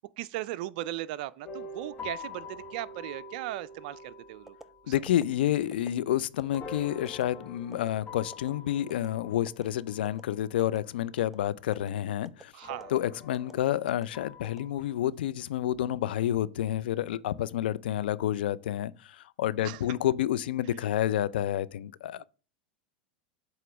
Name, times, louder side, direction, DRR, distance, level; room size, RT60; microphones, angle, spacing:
voice 1, 0.2-4.6 4.8-4.9 12.5-12.9 19.6-19.8 22.2-22.3, right 14 dB, 65° right, 0.4 m, -37 dB
sound 1, 1.4-11.5 12.6-15.1, left 3 dB, 35° left, 1.6 m, -46 dB
sound 2, 4.5-4.7 5.1-5.2 5.7-5.9 6.4-6.6 7.0-7.2 7.7-7.9 8.3-8.5 8.9-9.1 9.5-9.6 10.0-10.2 10.6-10.8 11.2-11.4 11.7-11.9 12.2-12.4 12.8-13.0 13.3-13.5 13.9-14.0 14.4-15.1 15.5-15.8, right 2 dB, 5° right, 0.5 m, -48 dB
voice 2, 4.9-12.5 12.9-22.2, left 12 dB, 80° left, 0.4 m, -29 dB
7.9 x 3.0 x 6.0 m
hypercardioid pair, 110°, 5 cm